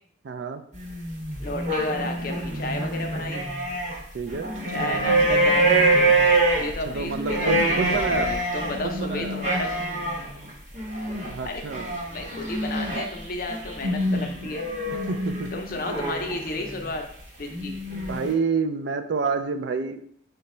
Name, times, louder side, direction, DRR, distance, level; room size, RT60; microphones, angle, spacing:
voice 1, 0.2-0.6 4.1-4.5 6.9-8.3 8.8-9.4 11.3-12.0 15.1-15.5 18.1-20.0, right 5 dB, 65° right, 8 dB, 0.4 m, -28 dB
sound 1, 0.8-4.0 4.3-16.9 17.5-18.3, right 2 dB, 40° right, 1.0 m, -25 dB
voice 2, 1.4-3.5 4.7-5.7 6.6-9.8 11.4-11.6 12.1-14.7 15.5-17.1 17.4-17.7, left 2 dB, 50° left, 3 dB, 0.6 m, -32 dB
5.0 x 2.2 x 4.2 m, 0.63 s
head